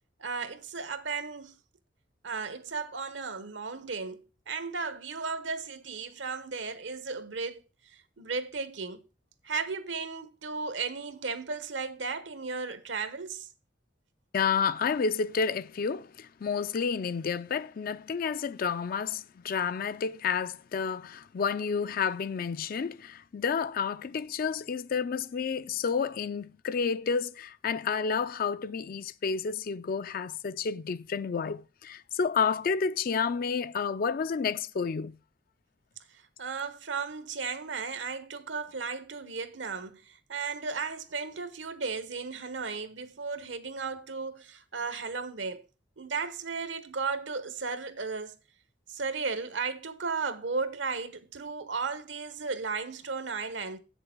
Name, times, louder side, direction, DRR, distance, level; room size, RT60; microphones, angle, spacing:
voice 1, 0.2-1.6 2.2-7.6 8.2-9.0 9.4-13.5 36.4-45.6 46.0-48.4 48.9-53.8, right 4 dB, 80° right, 1.1 m, -35 dB
voice 2, 14.3-35.1, left 6 dB, 50° left, 0.4 m, -30 dB
7.8 x 6.8 x 5.9 m
head